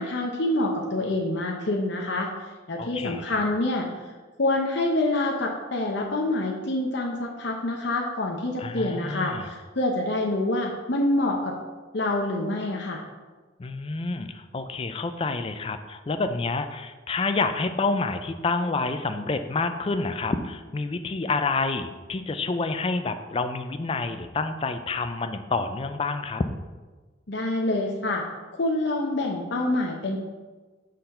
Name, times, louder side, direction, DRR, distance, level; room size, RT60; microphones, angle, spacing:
voice 1, 0.0-2.3 2.7-3.9 4.4-11.5 11.9-13.0 27.3-28.2 28.5-30.2, left 2 dB, 65° left, 0 dB, 0.8 m, -26 dB
voice 2, 2.8-3.4 8.6-9.5 13.6-26.4, left 3 dB, 30° left, 8 dB, 0.4 m, -28 dB
6.6 x 4.0 x 5.5 m, 1.3 s
head